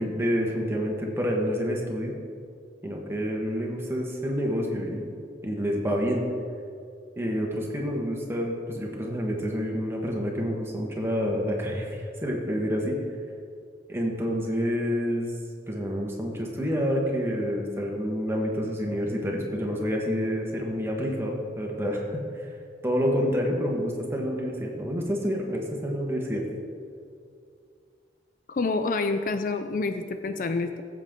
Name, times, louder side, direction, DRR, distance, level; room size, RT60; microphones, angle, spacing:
voice 1, 0.0-2.1 2.8-5.1 5.4-6.2 7.2-13.0 13.9-15.3 15.7-22.5 22.8-26.5, equal, 15° right, -1 dB, 1.5 m, -28 dB
voice 2, 28.5-30.8, left 3 dB, 50° left, 8 dB, 0.4 m, -27 dB
15.5 x 7.6 x 3.8 m, 2.3 s
head